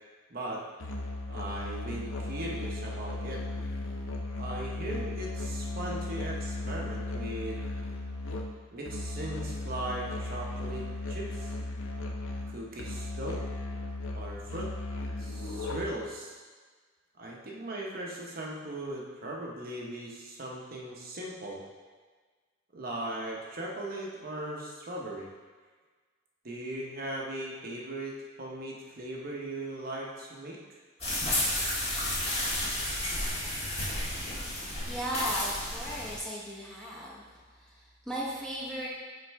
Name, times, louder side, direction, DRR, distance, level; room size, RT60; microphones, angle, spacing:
voice 1, 0.3-0.6 1.3-3.4 4.3-7.6 8.7-11.6 12.5-13.4 14.1-14.7 15.2-16.4 17.2-21.6 22.7-25.3 26.4-30.6, right 1 dB, 45° right, -2 dB, 0.8 m, -38 dB
Musical instrument, 0.8-16.1, left 2 dB, 70° left, 0.6 m, -36 dB
sound 1, 31.0-36.2, left 1 dB, 30° left, 1.5 m, -32 dB
voice 2, 34.3-37.2 37.5-38.9, equal, 5° left, -6 dB, 0.9 m, -37 dB
6.5 x 3.2 x 4.6 m, 1.4 s
head